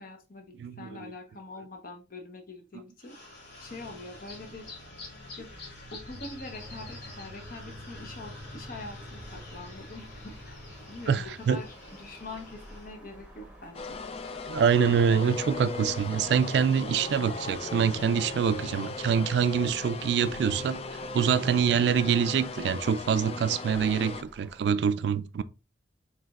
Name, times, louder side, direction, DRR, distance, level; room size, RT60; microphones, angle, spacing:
voice 1, 0.0-3.3 3.6-4.7 5.4-5.5 5.9-10.6 10.9-14.0, left 2 dB, 55° left, 0.9 m, -44 dB
voice 2, 0.6-1.1 11.1-11.6 14.5-25.4, right 7 dB, 70° right, 0.3 m, -25 dB
sound 1, 3.0-12.9, left 2 dB, 85° left, 2.0 m, -45 dB
sound 2, 6.5-24.7, equal, 5° right, 1.1 m, -53 dB
sound 3, 13.7-24.2, left 4 dB, 35° left, 0.3 m, -38 dB
5.0 x 3.2 x 2.4 m
head